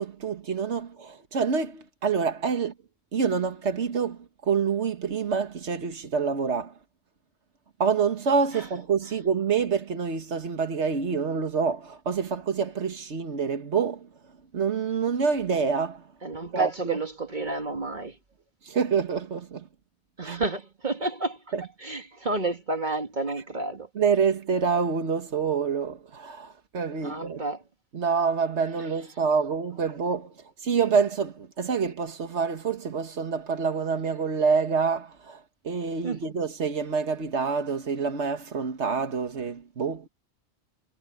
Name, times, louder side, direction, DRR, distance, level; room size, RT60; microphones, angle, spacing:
voice 1, 0.0-2.7 3.1-6.7 7.8-14.1 14.5-16.0 16.5-17.0 18.7-19.6 20.2-20.4 21.5-21.6 24.0-27.4 27.9-30.3 30.6-40.1, right 5 dB, 85° right, 1.8 m, -27 dB
voice 2, 16.2-18.1 20.2-21.4 21.8-23.9 27.0-27.6 36.0-36.2, right 2 dB, 45° right, 1.7 m, -30 dB
omnidirectional pair, 1.1 m